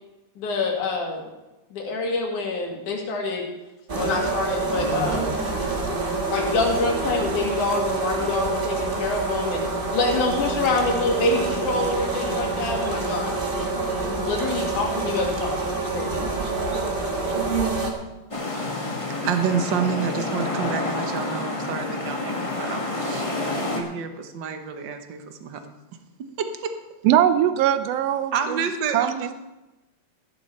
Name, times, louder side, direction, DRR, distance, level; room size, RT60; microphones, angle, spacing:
voice 1, 0.4-1.2 1.7-3.4 3.9-5.4 6.3-9.6 9.9-13.4 14.1-16.3, left 3 dB, 85° left, 0 dB, 3.6 m, -26 dB
sound 1, 3.9-17.9, right 3 dB, 25° right, 1.2 m, -27 dB
sound 2, 18.3-23.8, left 2 dB, 30° left, 0.6 m, -28 dB
voice 2, 19.1-25.6 26.4-26.7 28.3-29.3, right 7 dB, 60° right, 7 dB, 1.2 m, -29 dB
voice 3, 27.0-28.6 28.9-29.3, right 11 dB, 80° right, 12 dB, 1.4 m, -21 dB
15.0 x 10.5 x 4.3 m, 1.0 s
omnidirectional pair, 3.4 m